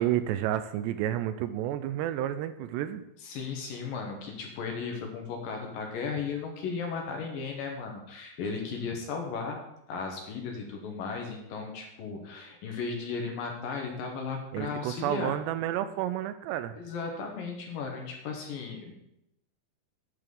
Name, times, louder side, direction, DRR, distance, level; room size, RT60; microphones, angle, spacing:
voice 1, 0.0-3.1 14.5-16.8, right 12 dB, 85° right, 11 dB, 2.6 m, -30 dB
voice 2, 3.2-9.6 9.9-15.4 16.8-18.9, left 5 dB, 65° left, 2 dB, 2.7 m, -35 dB
9.8 x 5.9 x 7.0 m, 0.82 s
omnidirectional pair, 5.1 m